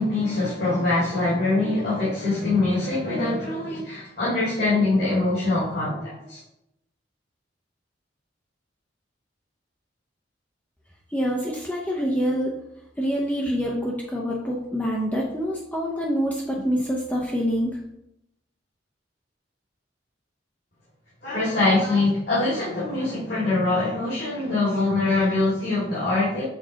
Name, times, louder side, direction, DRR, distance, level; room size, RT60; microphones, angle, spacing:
voice 1, 0.0-6.4 21.2-26.4, left 2 dB, 55° left, -8 dB, 1.9 m, -23 dB
voice 2, 11.1-12.5 13.0-17.7, equal, 10° left, -2 dB, 0.6 m, -26 dB
6.1 x 4.0 x 3.8 m, 0.83 s
head